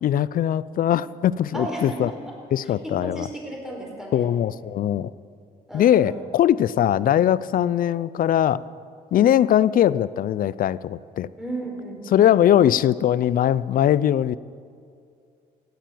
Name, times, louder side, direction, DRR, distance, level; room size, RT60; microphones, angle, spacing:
voice 1, 0.0-2.1 2.5-3.3 4.1-5.1 5.7-8.6 9.1-11.3 12.1-14.4, left 11 dB, 55° left, 19 dB, 0.5 m, -20 dB
voice 2, 1.5-2.3 2.6-4.3 5.7-6.3 11.4-12.4, right 1 dB, 5° right, -1 dB, 4.8 m, -34 dB
16.5 x 9.2 x 7.8 m, 2.4 s
supercardioid pair, 75°, 17 cm